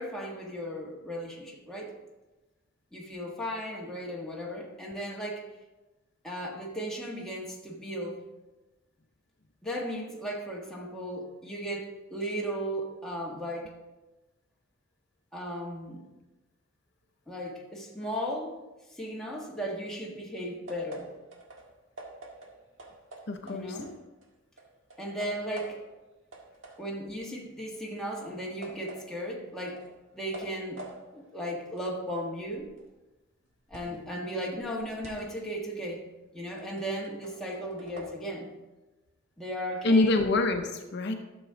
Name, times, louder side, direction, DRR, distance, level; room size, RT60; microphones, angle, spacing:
voice 1, 0.0-1.9 2.9-5.5 6.2-8.2 9.6-13.7 15.3-16.0 17.3-18.6 18.9-21.1 23.4-23.9 25.0-25.8 26.8-29.8 30.1-30.8 31.1-32.7 33.7-36.0 36.3-38.5 39.4-40.2, equal, 5° left, -3 dB, 1.5 m, -36 dB
sound 1, 20.7-24.3 24.6-26.0 26.3-34.1 34.4-38.1, right 2 dB, 70° right, 1.8 m, -48 dB
voice 2, 23.3-23.8 33.9-34.0 39.8-41.1, left 2 dB, 60° left, 5 dB, 0.7 m, -26 dB
12.5 x 7.1 x 3.7 m, 1.1 s
head